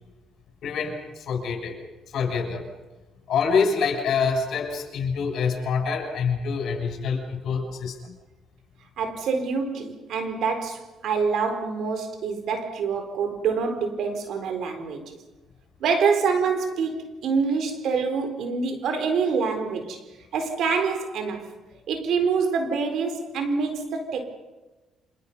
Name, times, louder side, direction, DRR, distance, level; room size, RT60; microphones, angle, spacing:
voice 1, 0.6-1.8 2.1-2.7 3.3-8.1, left 5 dB, 70° left, 6.9 m, -26 dB
voice 2, 9.0-15.1 15.8-20.0 20.3-21.4 21.9-24.3, right 5 dB, 75° right, 4.2 m, -26 dB
28.5 x 26.5 x 5.5 m
cardioid pair, 90°, 0 cm